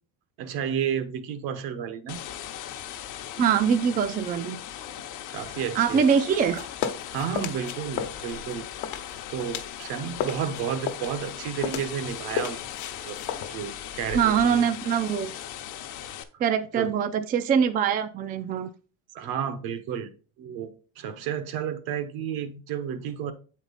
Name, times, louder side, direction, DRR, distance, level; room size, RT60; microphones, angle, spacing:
voice 1, 0.4-2.2 5.0-6.1 7.1-8.7 9.3-12.7 13.0-13.2 13.5-14.7 16.7-17.0 19.1-20.1 20.4-20.7 21.0-23.3, right 8 dB, 70° right, 1.1 m, -32 dB
sound 1, 2.1-16.2, left 11 dB, 55° left, 0.8 m, -39 dB
voice 2, 3.4-4.6 5.8-6.7 14.1-15.3 16.4-18.7, right 7 dB, 25° right, 0.4 m, -23 dB
sound 2, 6.3-9.9 10.1-14.6, left 8 dB, 75° left, 1.0 m, -34 dB
8.0 x 4.5 x 4.0 m
cardioid pair, 135°, 37 cm